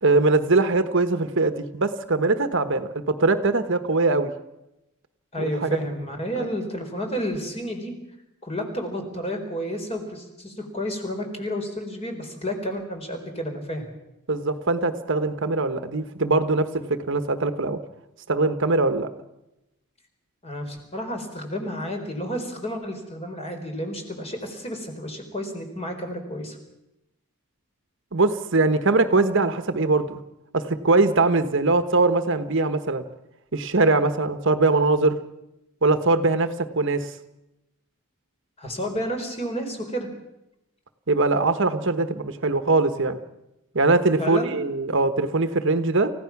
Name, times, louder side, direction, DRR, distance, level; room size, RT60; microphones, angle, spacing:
voice 1, 0.0-4.3 5.4-5.8 14.3-17.8 18.3-19.1 28.1-30.2 30.5-33.0 33.5-35.2 35.8-37.1 41.1-43.2 43.7-46.1, right 3 dB, 60° right, 10 dB, 1.2 m, -22 dB
voice 2, 5.3-7.9 8.4-13.9 20.4-26.6 38.6-40.1 44.2-44.5, equal, 30° left, 4 dB, 4.1 m, -31 dB
29.0 x 16.0 x 6.0 m, 0.90 s
head